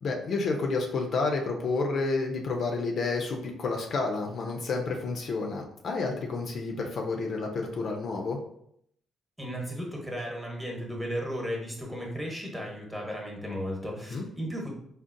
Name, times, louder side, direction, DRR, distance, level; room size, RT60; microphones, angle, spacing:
voice 1, 0.0-8.4 14.1-14.2, left 3 dB, 60° left, 2 dB, 0.5 m, -30 dB
voice 2, 9.4-14.7, equal, 10° right, -1 dB, 1.0 m, -35 dB
3.8 x 2.0 x 2.5 m, 0.71 s
cardioid pair, 90°, 0 cm